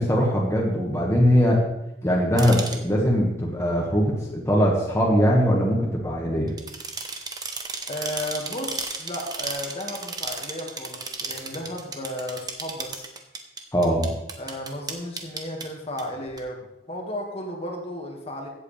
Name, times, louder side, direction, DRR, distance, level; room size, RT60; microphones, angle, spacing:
voice 1, 0.0-1.7 2.0-6.5 13.7-14.1, equal, 15° left, -3 dB, 1.8 m, -21 dB
sound 1, 2.4-2.8 6.5-15.6 16.0-16.1 16.4-16.5, right 4 dB, 25° right, 1.2 m, -34 dB
voice 2, 7.9-13.1 14.4-18.5, left 1 dB, 35° left, 0 dB, 1.9 m, -34 dB
15.5 x 8.2 x 3.4 m, 0.88 s
head